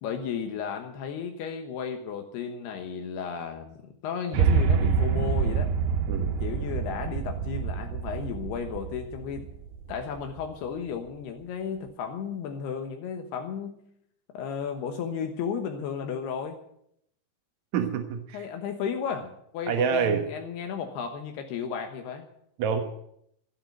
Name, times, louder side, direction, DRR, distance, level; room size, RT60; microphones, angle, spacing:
voice 1, 0.0-5.7 6.4-9.5 9.9-13.8 14.3-16.6 18.3-22.3, left 7 dB, 75° left, 5 dB, 3.1 m, -34 dB
sound 1, 4.3-10.5, right 6 dB, 80° right, 3.2 m, -27 dB
voice 2, 17.7-18.5 19.7-20.2 22.6-22.8, right 7 dB, 65° right, 4 dB, 1.9 m, -26 dB
15.5 x 8.6 x 9.1 m, 0.73 s
omnidirectional pair, 4.9 m